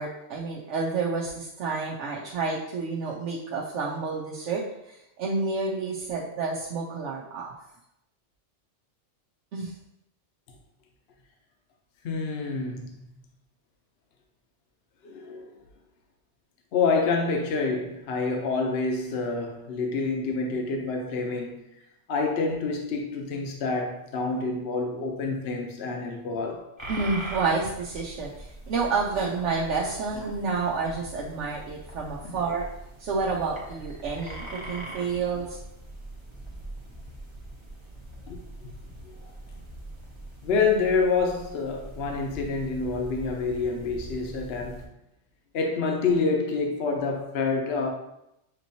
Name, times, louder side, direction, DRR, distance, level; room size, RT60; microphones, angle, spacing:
voice 1, 0.0-7.5 9.5-9.7 26.9-32.6 33.0-35.6, right 4 dB, 90° right, 1.0 m, -29 dB
voice 2, 12.0-13.0 15.0-15.5 16.7-21.6 22.1-26.7 32.2-32.5 38.3-38.7 39.2-39.3 40.4-44.8 45.5-47.9, left 4 dB, 65° left, 0.9 m, -27 dB
sound 1, 26.8-44.9, right 1 dB, 30° right, 0.7 m, -42 dB
6.7 x 2.9 x 2.7 m
omnidirectional pair, 1.2 m